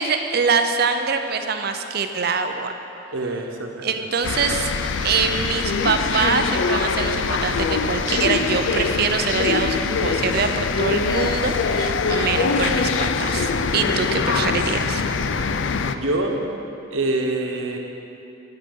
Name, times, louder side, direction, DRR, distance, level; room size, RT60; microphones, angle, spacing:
voice 1, 0.0-2.7 3.8-4.7 5.0-15.0, right 5 dB, 50° right, 7 dB, 0.5 m, -24 dB
voice 2, 3.1-3.8 15.9-16.4 16.9-17.8, right 2 dB, 85° right, 2 dB, 1.1 m, -25 dB
sound 1, 4.2-16.0, left 5 dB, 70° left, 0.4 m, -23 dB
10.5 x 8.9 x 5.4 m, 2.9 s
head